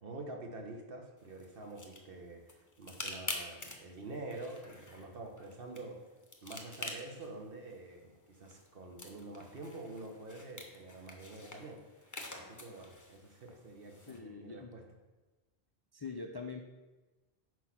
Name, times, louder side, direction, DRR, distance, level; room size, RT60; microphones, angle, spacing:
voice 1, 0.0-6.0 6.4-11.8 12.3-14.8, right 2 dB, 65° right, 2 dB, 1.2 m, -47 dB
sound 1, 1.2-14.2, left 2 dB, 20° left, 0.8 m, -48 dB
voice 2, 14.1-14.7 15.9-16.7, left 4 dB, 40° left, 2 dB, 0.3 m, -43 dB
6.2 x 4.6 x 5.8 m, 1.2 s
omnidirectional pair, 1.0 m